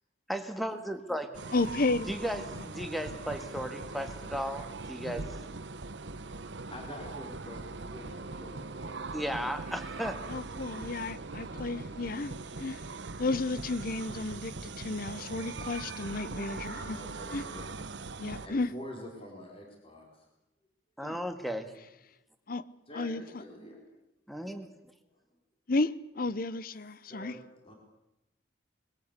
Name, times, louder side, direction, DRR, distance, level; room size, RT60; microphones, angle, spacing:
voice 1, 0.3-1.3 2.1-5.3 9.1-10.2 21.0-21.7 24.3-24.7, equal, ahead, 1.7 m, -35 dB
sound 1, 1.3-18.5, right 3 dB, 75° right, 1.0 m, -41 dB
voice 2, 1.5-2.6 10.3-12.9 13.2-17.0 17.3-17.4 18.2-18.7 21.0-21.2 22.5-22.7 22.9-23.4 25.7-27.4, left 3 dB, 50° left, 0.9 m, -33 dB
voice 3, 6.7-9.5 12.4-12.6 13.0-13.1 16.7-17.7 18.4-20.1 22.9-23.9 27.1-27.4 27.6-27.8, left 1 dB, 30° left, 4.6 m, -46 dB
21.5 x 18.0 x 8.3 m
head